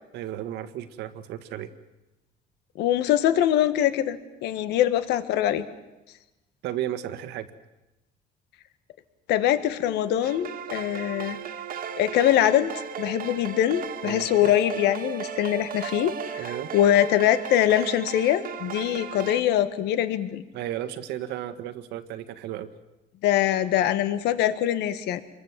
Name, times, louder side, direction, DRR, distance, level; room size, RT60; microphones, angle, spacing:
voice 1, 0.1-1.7 6.6-7.5 14.0-14.5 16.4-16.7 20.5-22.7, right 12 dB, 85° right, 10 dB, 1.8 m, -34 dB
voice 2, 2.8-5.6 9.3-11.4 12.0-12.7 13.0-20.4 23.2-25.2, left 11 dB, 85° left, 11 dB, 1.6 m, -23 dB
sound 1, 10.2-19.4, right 8 dB, 60° right, 1.9 m, -36 dB
27.0 x 23.0 x 7.5 m, 1.0 s
cardioid pair, 110°, 17 cm